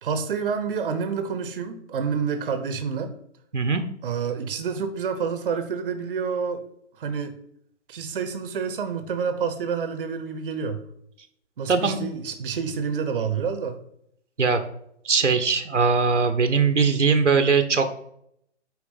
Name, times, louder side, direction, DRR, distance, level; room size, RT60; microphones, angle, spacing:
voice 1, 0.0-3.1 4.0-6.6 7.0-7.3 7.9-10.8 11.6-13.7, right 6 dB, 50° right, 8 dB, 0.9 m, -28 dB
voice 2, 11.7-12.0 14.4-14.6 15.0-18.1, right 5 dB, 80° right, 8 dB, 1.0 m, -21 dB
8.8 x 3.4 x 5.0 m, 0.72 s
figure-of-eight pair, 130°, 36 cm